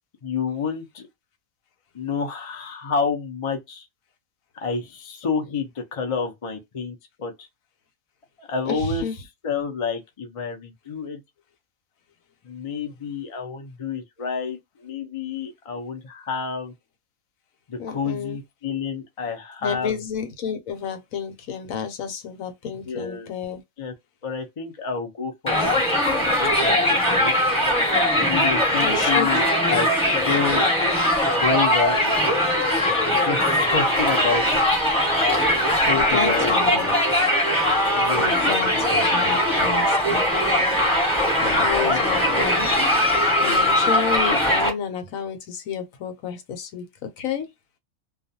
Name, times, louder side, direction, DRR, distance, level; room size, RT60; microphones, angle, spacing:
voice 1, 0.2-1.1 1.9-3.9 4.5-7.3 8.4-9.1 9.4-11.2 12.4-16.7 17.7-20.0 22.9-23.3 23.8-23.9 24.2-25.7 26.2-27.3 28.1-29.9 30.3-30.7 31.2-32.4 33.0-34.6 35.9-36.6 37.9-38.3 38.7-38.9 40.0-40.2 41.9-42.5, left 5 dB, 45° left, 0.4 m, -29 dB
voice 2, 8.7-9.1 17.8-18.4 19.6-23.6 28.8-29.4 35.8-37.0 38.2-40.3 41.4-42.7 43.4-47.5, left 7 dB, 75° left, 1.1 m, -30 dB
Crowd, 25.5-44.7, left 1 dB, 5° left, 1.1 m, -20 dB
2.4 x 2.3 x 2.6 m
omnidirectional pair, 1.5 m